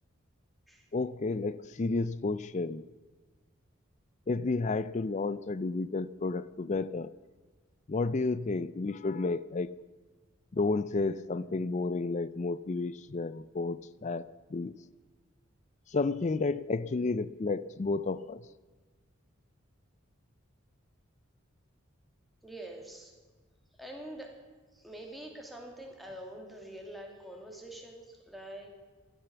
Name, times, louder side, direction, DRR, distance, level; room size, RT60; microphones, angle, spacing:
voice 1, 0.9-2.8 4.3-7.1 7.9-9.8 10.5-14.7 15.9-18.4, left 3 dB, 35° left, 17 dB, 0.4 m, -31 dB
voice 2, 22.4-23.1 23.8-24.4 24.7-28.7, right 1 dB, ahead, 1 dB, 2.6 m, -45 dB
16.0 x 12.0 x 7.0 m, 1.4 s
head